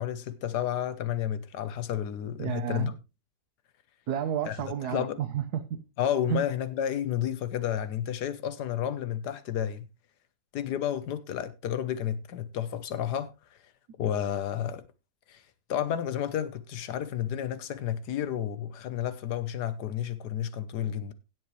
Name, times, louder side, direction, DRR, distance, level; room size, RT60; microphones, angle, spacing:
voice 1, 0.0-2.9 4.4-4.6 4.9-5.2 6.0-9.9 10.5-13.3 14.0-14.9 15.3-15.4 15.7-21.1, left 10 dB, 85° left, 1.5 m, -31 dB
voice 2, 2.4-2.9 4.1-5.8 6.3-6.4, right 9 dB, 75° right, 1.5 m, -31 dB
17.0 x 7.9 x 3.2 m
omnidirectional pair, 1.7 m